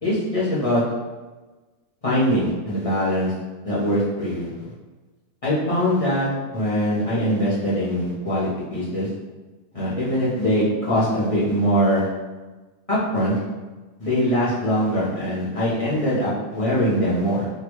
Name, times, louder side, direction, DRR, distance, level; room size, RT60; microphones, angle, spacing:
voice 1, 0.0-0.8 2.0-3.3 3.6-4.5 5.4-9.1 9.7-12.1 12.9-13.4 14.0-17.5, equal, 30° left, -9 dB, 0.8 m, -22 dB
3.8 x 2.3 x 3.1 m, 1.2 s
omnidirectional pair, 1.7 m